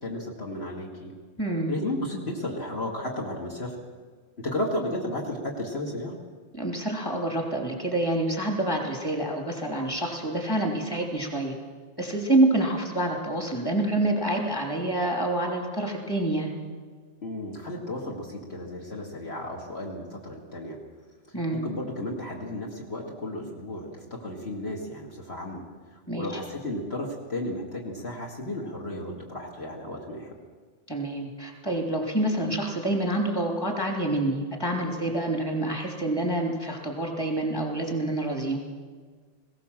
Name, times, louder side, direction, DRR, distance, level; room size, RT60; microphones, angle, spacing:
voice 1, 0.0-1.1 1.7-3.8 4.4-6.2 17.2-20.8 21.5-25.6 25.9-30.4, left 1 dB, 55° left, 0 dB, 2.4 m, -34 dB
voice 2, 1.4-1.7 6.5-11.5 12.0-16.5 21.3-21.6 26.1-26.3 30.9-38.6, right 1 dB, 20° left, 1 dB, 3.2 m, -27 dB
20.5 x 17.0 x 7.5 m, 1.5 s
omnidirectional pair, 1.3 m